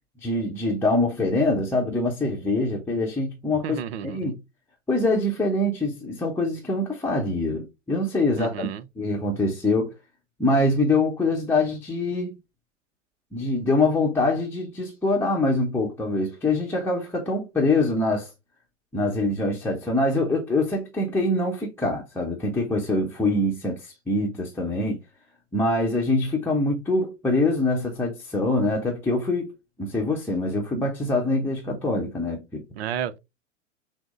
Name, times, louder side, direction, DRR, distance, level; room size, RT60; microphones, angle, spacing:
voice 1, 0.2-3.8 4.0-4.4 4.9-8.7 9.0-9.9 10.4-12.3 13.3-18.3 18.9-25.0 25.5-29.5 29.8-32.6, left 2 dB, 5° left, 0.8 m, -24 dB
voice 2, 3.6-4.4 8.4-8.8 32.7-33.2, right 9 dB, 55° right, 0.7 m, -32 dB
6.1 x 2.1 x 3.5 m
figure-of-eight pair, 90°, 37 cm